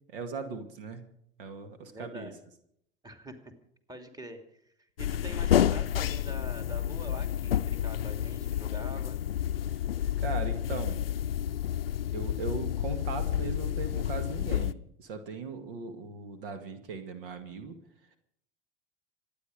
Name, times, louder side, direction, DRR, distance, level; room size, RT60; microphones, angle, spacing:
voice 1, 0.1-1.0 1.4-2.3 9.7-9.8 10.2-11.0 12.1-17.8, right 4 dB, 65° right, 8 dB, 2.1 m, -39 dB
voice 2, 1.8-2.4 3.0-3.4 3.9-9.3, equal, 15° right, 6 dB, 2.7 m, -45 dB
sound 1, 5.0-14.7, left 10 dB, 80° left, 0.6 m, -30 dB
26.5 x 9.9 x 5.1 m, 0.70 s
figure-of-eight pair, 80°, 29 cm